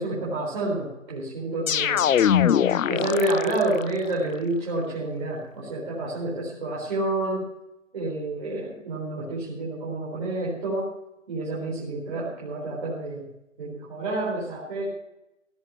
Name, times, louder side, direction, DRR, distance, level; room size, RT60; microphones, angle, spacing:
voice 1, 0.0-2.1 2.9-7.5 7.9-10.9 11.3-13.3 13.6-14.9, right 2 dB, 40° right, -6 dB, 4.3 m, -29 dB
sound 1, 1.7-3.9, left 9 dB, 85° left, 0.6 m, -22 dB
16.5 x 6.6 x 9.5 m, 0.92 s
hypercardioid pair, 170°, 39 cm